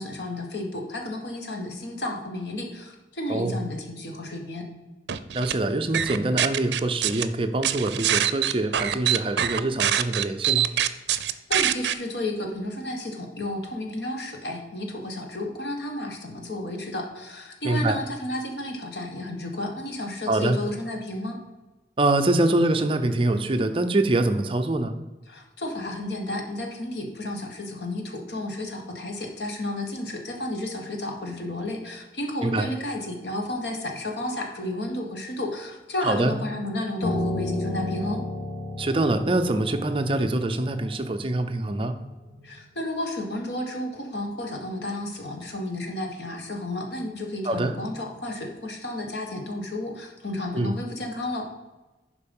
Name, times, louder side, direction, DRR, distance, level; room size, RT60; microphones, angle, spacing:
voice 1, 0.0-4.7 11.5-21.4 25.3-38.2 42.4-51.5, left 1 dB, 80° left, 2 dB, 1.6 m, -32 dB
sound 1, 5.1-5.5 5.9-7.2 7.6-11.9, right 10 dB, 85° right, 0.5 m, -24 dB
voice 2, 5.3-10.7 17.6-18.0 20.3-20.6 22.0-24.9 32.4-32.7 36.0-36.4 38.8-42.0 47.4-47.7 50.5-50.7, right 2 dB, 30° right, 8 dB, 0.6 m, -24 dB
Piano, 37.0-42.3, left 2 dB, 40° left, 2.2 m, -32 dB
11.5 x 4.7 x 5.4 m, 1.2 s
head